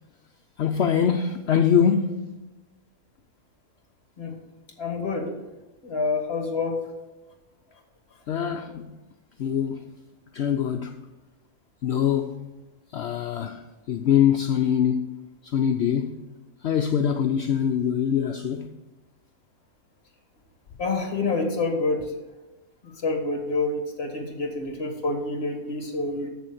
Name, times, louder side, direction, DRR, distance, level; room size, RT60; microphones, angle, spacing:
voice 1, 0.6-2.2 8.3-8.8 9.4-9.9 10.3-10.9 11.8-12.5 12.9-13.6 13.9-15.2 15.5-16.2 16.6-18.7, left 8 dB, 60° left, 0.7 m, -23 dB
voice 2, 4.8-5.3 5.8-6.8 20.8-22.1 23.0-26.3, left 3 dB, 45° left, 2.0 m, -27 dB
7.0 x 7.0 x 7.7 m
omnidirectional pair, 1.5 m